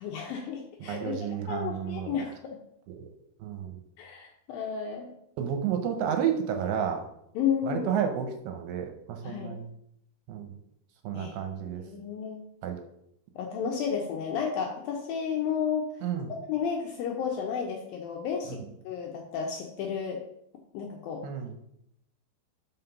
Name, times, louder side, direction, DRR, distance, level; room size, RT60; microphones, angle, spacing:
voice 1, 0.0-1.1 1.5-2.6 4.0-5.1 7.4-7.9 9.2-9.5 11.1-11.4 11.7-12.4 13.4-15.9 16.3-20.2 20.7-21.2, left 7 dB, 80° left, 1 dB, 2.1 m, -32 dB
voice 2, 0.8-2.2 2.9-3.1 3.4-3.8 5.4-7.0 7.6-9.7 10.3-10.5 11.0-11.8 12.6-12.8 16.0-16.3 21.2-21.6, right 8 dB, 75° right, 4 dB, 2.5 m, -31 dB
5.8 x 5.5 x 5.6 m, 0.76 s
omnidirectional pair, 5.0 m